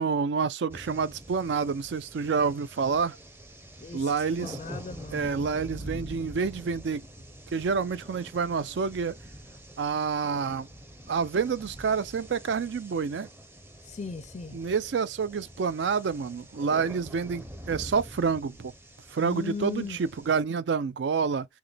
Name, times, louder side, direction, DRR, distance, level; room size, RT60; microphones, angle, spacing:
voice 1, 0.0-3.2 3.9-4.6 5.1-7.0 7.5-9.1 9.8-10.7 11.1-13.3 14.5-18.7 19.1-21.5, right 5 dB, 70° right, 0.4 m, -28 dB
sound 1, 0.7-20.4, equal, 15° right, 0.6 m, -45 dB
voice 2, 3.8-4.1 4.4-5.4 13.8-14.6 19.2-20.0, left 4 dB, 40° left, 0.4 m, -37 dB
5.9 x 2.1 x 3.3 m
head